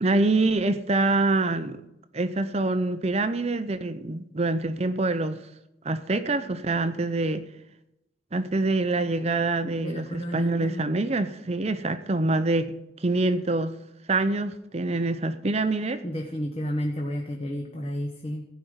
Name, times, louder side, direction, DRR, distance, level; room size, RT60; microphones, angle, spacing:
voice 1, 0.0-1.8 2.1-5.4 5.8-7.5 8.3-13.7 14.1-16.0, right 2 dB, 35° right, 10 dB, 0.7 m, -25 dB
voice 2, 9.8-10.8 16.0-18.5, equal, 35° left, 1 dB, 1.4 m, -31 dB
15.5 x 5.2 x 9.6 m, 0.86 s
head